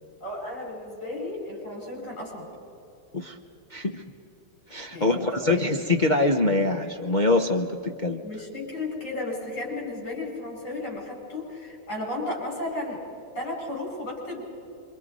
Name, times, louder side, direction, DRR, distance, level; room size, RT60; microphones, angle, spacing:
voice 1, 0.2-2.5 4.9-5.7 8.2-13.0 13.3-14.4, left 2 dB, 35° left, -2 dB, 7.0 m, -34 dB
voice 2, 3.7-4.0 4.7-8.2, left 2 dB, 55° left, 2 dB, 0.5 m, -24 dB
26.5 x 25.5 x 5.4 m, 3.0 s
omnidirectional pair, 2.3 m